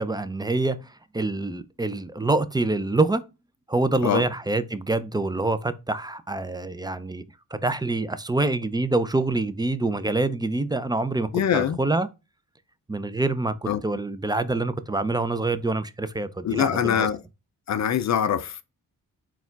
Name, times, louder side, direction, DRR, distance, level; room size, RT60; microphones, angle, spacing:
voice 1, 0.0-3.2 3.7-7.2 7.5-12.1 12.9-17.1, right 2 dB, 10° right, 0.4 m, -26 dB
voice 2, 11.3-11.8 13.7-13.8 16.4-17.2 17.7-18.6, left 9 dB, 50° left, 0.4 m, -23 dB
4.1 x 2.4 x 3.9 m
cardioid pair, 55°, 36 cm